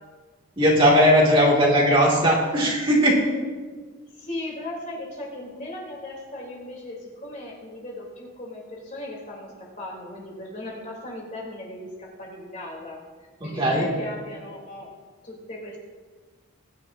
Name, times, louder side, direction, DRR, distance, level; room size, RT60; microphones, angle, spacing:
voice 1, 0.6-3.2 13.4-13.9, equal, 25° right, -4 dB, 2.4 m, -18 dB
voice 2, 1.3-1.8 4.0-14.9 15.2-15.8, left 1 dB, 35° left, -3 dB, 3.4 m, -37 dB
21.0 x 10.0 x 2.8 m, 1.4 s
head